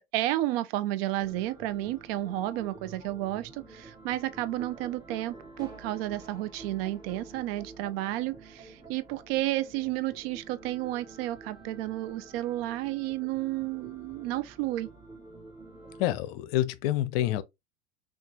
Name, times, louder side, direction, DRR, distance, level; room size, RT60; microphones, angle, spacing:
voice 1, 0.1-14.9, right 15 dB, 55° right, 0.6 m, -32 dB
sound 1, 1.2-16.2, right 3 dB, 10° right, 2.1 m, -49 dB
voice 2, 16.0-17.4, left 13 dB, 55° left, 0.6 m, -27 dB
5.7 x 2.5 x 2.8 m
figure-of-eight pair, 80°, 36 cm